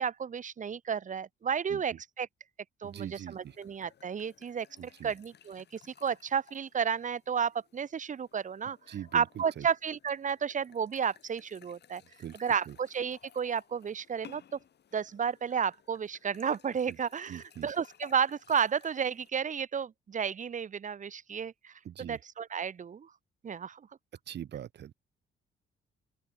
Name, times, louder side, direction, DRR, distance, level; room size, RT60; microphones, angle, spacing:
voice 1, 0.0-2.3 2.8-12.0 12.4-14.6 14.9-23.1 23.4-23.9, right 7 dB, 40° right, 0.9 m, -32 dB
sound 1, 2.8-19.3, left 9 dB, 55° left, 3.6 m, -58 dB
voice 2, 2.8-3.6 4.8-5.1 8.9-9.7 12.2-12.4 12.7-12.8 16.9-17.0 17.3-17.7 21.8-22.2 24.3-24.9, right 10 dB, 60° right, 1.2 m, -42 dB
open air
cardioid pair, 90°, 20 cm